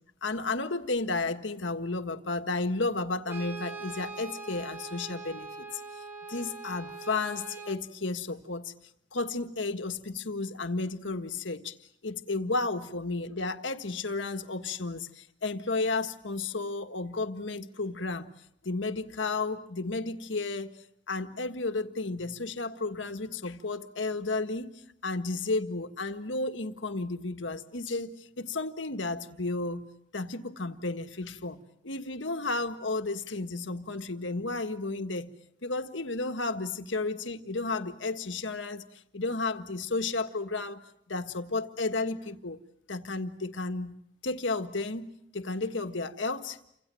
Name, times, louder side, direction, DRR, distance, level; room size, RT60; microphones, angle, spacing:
voice 1, 0.2-5.8 6.3-8.7 9.1-11.7 12.0-18.3 18.6-20.7 21.1-29.9 30.1-35.3 35.6-38.8 39.1-40.8 41.1-42.6 42.9-43.9 44.2-46.6, left 3 dB, 85° left, 8 dB, 1.6 m, -33 dB
Brass instrument, 3.3-7.8, right 4 dB, 10° right, 2.5 m, -42 dB
29.5 x 26.0 x 7.7 m, 0.75 s
head